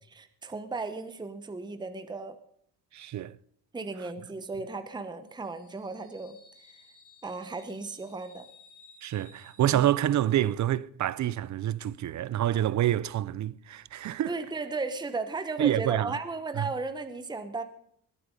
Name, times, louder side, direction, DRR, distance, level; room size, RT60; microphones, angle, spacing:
voice 1, 0.1-2.4 3.7-6.8 7.2-8.4 14.2-17.6, right 3 dB, 10° right, 0.9 m, -35 dB
voice 2, 2.9-3.4 9.0-14.3 15.6-16.2 16.6-16.7, right 12 dB, 50° right, 0.5 m, -27 dB
sound 1, 5.2-10.5, left 3 dB, 10° left, 4.5 m, -58 dB
20.0 x 8.7 x 5.3 m
cardioid pair, 120°, 38 cm